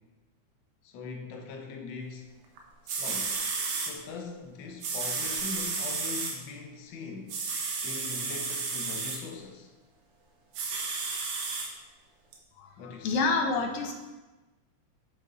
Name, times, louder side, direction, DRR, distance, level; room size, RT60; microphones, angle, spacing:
voice 1, 0.8-2.3 2.8-3.4 3.8-7.4 7.8-9.7 12.8-13.2, left 4 dB, 85° left, 3 dB, 1.0 m, -41 dB
sound 1, 2.6-2.7 2.9-3.9 4.8-6.3 7.3-9.2 10.5-11.7 12.3-12.4, right 4 dB, 60° right, 1.7 m, -32 dB
voice 2, 12.6-13.9, left 4 dB, 65° left, 3 dB, 1.5 m, -28 dB
9.4 x 6.7 x 3.9 m, 1.2 s
omnidirectional pair, 3.4 m